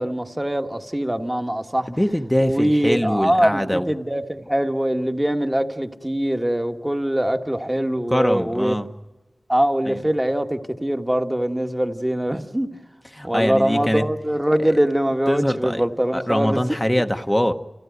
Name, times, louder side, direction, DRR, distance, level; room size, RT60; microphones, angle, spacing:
voice 1, 0.0-1.9 2.4-8.7 9.5-12.8 13.2-16.6, right 1 dB, 15° right, 6 dB, 1.5 m, -22 dB
voice 2, 1.9-3.9 8.1-8.9 9.8-10.0 13.1-14.1 15.3-15.8 16.1-17.5, equal, 10° left, 7 dB, 1.0 m, -22 dB
30.0 x 15.5 x 9.3 m, 1.2 s
wide cardioid pair, 75°, 0 cm